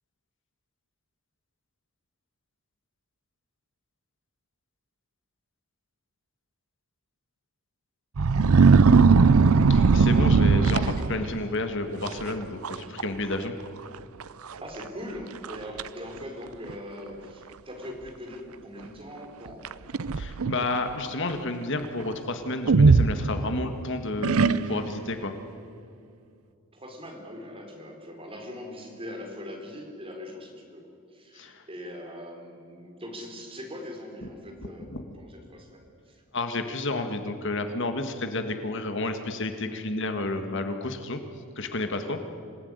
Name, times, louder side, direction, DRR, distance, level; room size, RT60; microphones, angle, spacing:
sound 1, 8.2-11.4 12.1-12.3 12.6-13.1 13.3-13.4 14.2-14.3 14.8-14.9 15.4-15.9 16.7-16.8 19.6-20.6 22.7-23.7 24.2-25.0, right 4 dB, 75° right, 0.6 m, -19 dB
voice 1, 9.7-13.5 20.1-25.3 31.3-31.6 34.9-35.0 36.3-41.2 41.6-42.2, left 2 dB, 55° left, 7 dB, 1.9 m, -31 dB
voice 2, 14.6-19.7 26.7-30.8 31.1-34.9 35.2-36.2 42.0-42.3, left 1 dB, 25° right, 2 dB, 4.1 m, -41 dB
26.5 x 18.5 x 9.7 m, 2.5 s
head